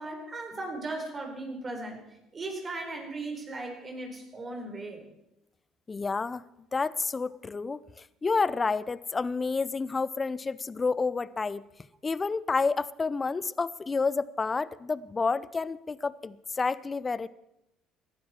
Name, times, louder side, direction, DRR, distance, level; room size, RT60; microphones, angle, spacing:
voice 1, 0.0-2.0 2.3-5.0, right 2 dB, 35° right, 3 dB, 4.2 m, -37 dB
voice 2, 5.9-6.4 6.7-7.8 8.2-11.6 12.0-17.3, left 4 dB, 30° left, 19 dB, 0.6 m, -29 dB
18.5 x 12.0 x 4.4 m, 0.88 s
supercardioid pair, 70°, 0 cm